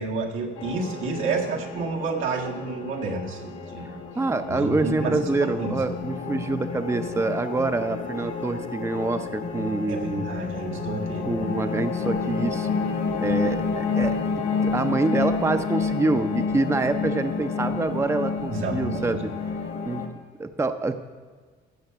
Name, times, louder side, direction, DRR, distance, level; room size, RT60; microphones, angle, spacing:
voice 1, 0.0-3.9 4.5-5.8 9.9-11.3 18.5-19.2, right 3 dB, 80° right, 0 dB, 1.7 m, -30 dB
sound 1, 0.6-20.1, left 5 dB, 85° left, 1.4 m, -30 dB
voice 2, 4.2-10.3 11.3-12.7 13.2-14.2 14.6-19.3 19.9-20.1 20.4-21.1, right 3 dB, 15° right, 9 dB, 0.6 m, -26 dB
14.5 x 5.7 x 6.7 m, 1.5 s
cardioid pair, 90°, 20 cm